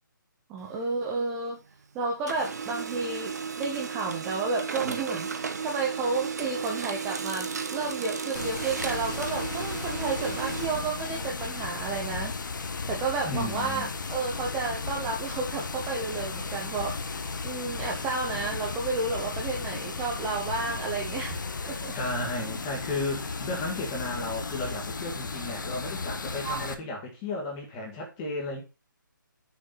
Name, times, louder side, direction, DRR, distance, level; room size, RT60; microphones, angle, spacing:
voice 1, 0.5-1.6 1.9-12.6 12.9-17.0 17.4-22.0 26.4-26.7, right 4 dB, 5° right, 0.6 m, -32 dB
Printer, 0.6-1.8 2.1-11.7, right 5 dB, 50° right, 1.0 m, -35 dB
Water, 8.3-26.7, left 4 dB, 65° left, 1.2 m, -35 dB
voice 2, 13.2-13.9 21.7-28.6, left 2 dB, 15° left, 1.9 m, -34 dB
6.6 x 5.2 x 5.5 m
hypercardioid pair, 175°, 11 cm